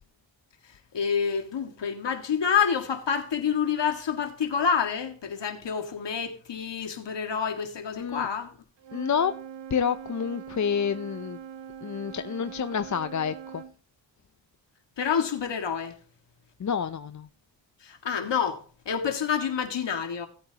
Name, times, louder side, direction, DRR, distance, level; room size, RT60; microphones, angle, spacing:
voice 1, 0.6-8.5 15.0-16.0 17.8-20.3, left 7 dB, 65° left, 2.1 m, -28 dB
voice 2, 8.0-8.3 8.9-9.3 9.7-11.4 11.8-13.6 16.6-17.3, left 7 dB, 40° left, 0.7 m, -28 dB
Wind instrument woodwind instrument, 8.8-13.7, right 8 dB, 65° right, 1.1 m, -42 dB
17.0 x 8.7 x 2.9 m
supercardioid pair, 45°, 46 cm